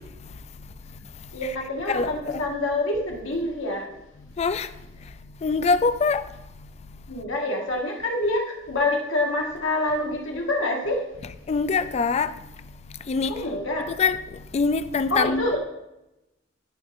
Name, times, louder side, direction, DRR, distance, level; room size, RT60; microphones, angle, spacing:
voice 1, 1.3-3.9 7.1-11.0 13.3-13.9 15.1-15.6, left 2 dB, 90° left, 1.6 m, -26 dB
voice 2, 1.9-2.4 4.4-4.7 5.4-6.2 11.5-12.3 13.1-13.3 14.0-14.2 14.5-15.5, left 4 dB, 35° left, 0.3 m, -23 dB
12.0 x 5.1 x 2.6 m
head